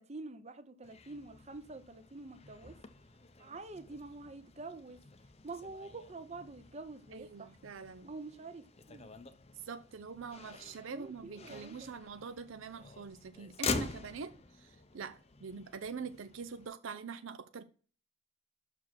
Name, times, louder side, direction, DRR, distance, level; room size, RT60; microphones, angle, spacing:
voice 1, 0.0-2.8 3.4-5.0 5.4-7.6 8.0-9.1 10.9-11.9, right 3 dB, 30° right, 0.7 m, -47 dB
Motor vehicle (road), 0.8-16.7, left 4 dB, 30° left, 0.6 m, -45 dB
voice 2, 7.1-8.1 9.5-17.6, right 5 dB, 70° right, 0.5 m, -44 dB
6.1 x 4.9 x 5.9 m
head